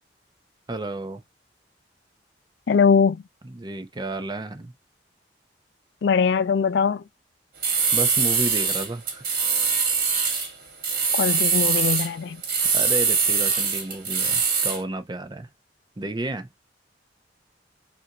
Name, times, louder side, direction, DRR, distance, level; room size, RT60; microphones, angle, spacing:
voice 1, 0.7-1.2 3.4-4.7 7.9-9.2 12.7-15.5 16.0-16.5, right 2 dB, 25° right, 0.7 m, -31 dB
voice 2, 2.7-3.2 6.0-7.0 11.1-12.4, left 6 dB, 70° left, 0.4 m, -21 dB
sound 1, 7.6-10.5 10.8-12.1 12.4-14.8, right 5 dB, 55° right, 1.5 m, -22 dB
5.6 x 2.6 x 2.8 m
head